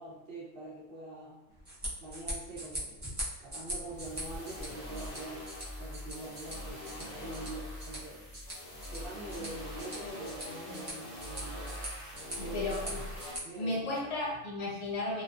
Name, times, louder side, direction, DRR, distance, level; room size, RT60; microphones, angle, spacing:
voice 1, 0.0-1.4 2.0-5.5 5.8-8.2 8.8-11.8 12.4-12.7 13.4-14.0, right 2 dB, 55° right, -6 dB, 0.7 m, -45 dB
sound 1, 1.5-13.4, right 1 dB, 20° right, 0.4 m, -43 dB
sound 2, 3.9-13.3, left 1 dB, 45° left, 0.8 m, -43 dB
voice 2, 12.4-13.0 13.6-15.2, left 2 dB, 70° left, -4 dB, 1.0 m, -34 dB
2.4 x 2.2 x 2.3 m, 0.92 s
omnidirectional pair, 1.3 m